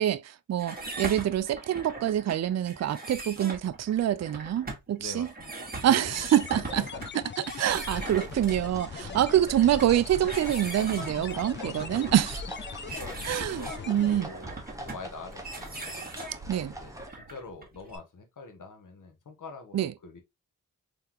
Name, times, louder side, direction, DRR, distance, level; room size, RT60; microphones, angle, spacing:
voice 1, 0.0-5.3 5.8-6.8 7.6-12.4 13.2-14.3 16.5-16.7 19.7-19.9, right 11 dB, 50° right, 0.4 m, -26 dB
sound 1, 0.6-18.0, right 2 dB, 25° right, 1.5 m, -41 dB
voice 2, 5.0-5.8 6.1-6.3 6.8-7.1 7.4-7.5 9.0-9.3 11.6-12.1 13.0-16.2 16.5-20.2, left 4 dB, 65° left, 1.2 m, -45 dB
sound 2, 5.9-14.2, left 7 dB, 35° left, 0.4 m, -41 dB
sound 3, 7.7-17.1, right 1 dB, 10° right, 0.9 m, -43 dB
3.8 x 3.4 x 2.8 m
cardioid pair, 70°, 34 cm